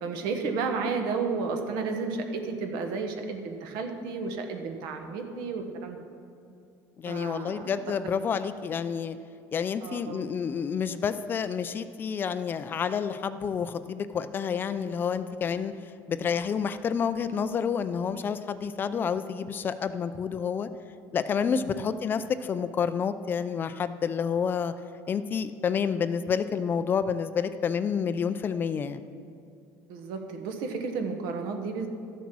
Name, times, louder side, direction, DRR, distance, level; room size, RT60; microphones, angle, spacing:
voice 1, 0.0-6.0 7.1-7.7 9.8-10.3 21.7-21.9 29.9-31.9, right 4 dB, 70° right, 5 dB, 1.4 m, -32 dB
voice 2, 7.0-9.2 9.5-15.7 16.1-20.7 21.1-24.7 25.1-29.0, left 6 dB, 30° left, 12 dB, 0.4 m, -29 dB
13.0 x 7.1 x 6.1 m, 2.5 s
cardioid pair, 160°, 7 cm